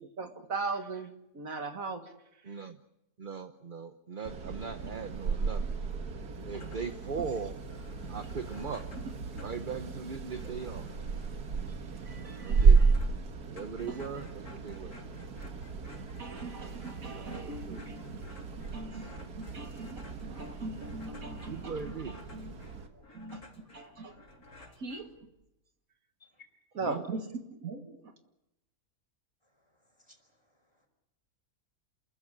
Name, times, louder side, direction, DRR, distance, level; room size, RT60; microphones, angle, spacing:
voice 1, 0.2-2.0 8.0-8.2 9.4-9.5 11.8-12.9 13.8-14.0 15.9-18.4 18.7-19.2 19.5-21.8 22.1-22.5 23.1-23.4 23.7-24.1 24.6-25.1 26.8-27.2 27.6-28.0, right 3 dB, 65° right, 6 dB, 2.1 m, -40 dB
voice 2, 2.4-2.8 3.2-5.8 6.4-7.6 8.1-8.9 9.4-10.9 12.4-12.8 13.5-15.0 17.1-17.8 21.5-22.2 26.8-27.0, right 5 dB, 40° right, 8 dB, 1.0 m, -39 dB
sound 1, 4.2-22.9, right 5 dB, 85° right, 2.2 m, -32 dB
sound 2, 6.4-7.1 7.4-7.5 7.7-25.5, left 2 dB, 90° left, 3.9 m, -55 dB
voice 3, 29.4-30.9, left 4 dB, 15° left, 5 dB, 4.7 m, -62 dB
28.0 x 14.0 x 9.9 m, 0.90 s
omnidirectional pair, 1.6 m